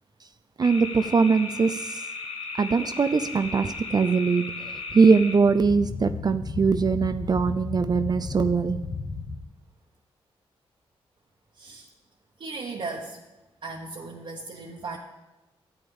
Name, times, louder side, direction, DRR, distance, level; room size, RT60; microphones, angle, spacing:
sound 1, 0.6-9.4, left 4 dB, 70° left, 1.3 m, -35 dB
voice 1, 0.6-2.0 2.6-4.5 4.9-8.8, right 5 dB, 40° right, 10 dB, 0.4 m, -22 dB
voice 2, 11.5-11.9 12.4-13.2 13.6-15.0, right 3 dB, 55° right, -3 dB, 1.3 m, -36 dB
12.5 x 8.7 x 3.6 m, 1.0 s
cardioid pair, 70°, 10 cm